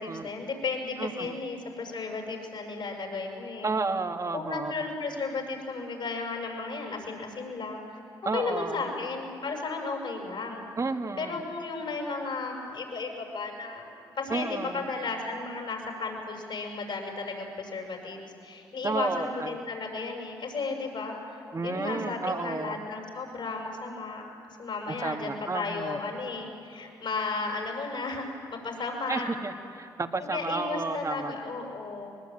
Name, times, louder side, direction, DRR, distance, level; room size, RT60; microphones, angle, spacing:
voice 1, 0.0-3.8 4.3-8.0 8.3-10.7 11.2-13.8 14.2-24.3 24.6-29.3 30.2-32.1, left 3 dB, 60° left, 1 dB, 6.9 m, -34 dB
voice 2, 1.0-1.3 3.6-4.9 8.3-8.9 10.8-11.3 14.3-14.8 18.8-19.5 21.5-22.8 25.0-26.0 29.1-31.3, right 3 dB, 35° right, 6 dB, 1.9 m, -32 dB
23.0 x 21.0 x 9.2 m, 2.7 s
supercardioid pair, 50°, 9 cm